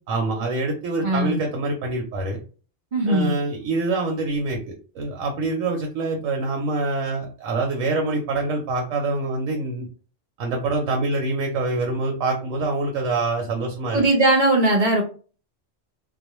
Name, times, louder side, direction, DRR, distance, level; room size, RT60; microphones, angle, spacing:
voice 1, 0.1-2.4 3.1-4.6 4.9-9.9 10.4-14.0, right 3 dB, 85° right, 1 dB, 1.0 m, -25 dB
voice 2, 1.0-1.3 2.9-3.3 13.9-15.0, right 2 dB, 45° right, 1 dB, 0.7 m, -19 dB
2.3 x 2.1 x 2.9 m, 0.38 s
omnidirectional pair, 1.3 m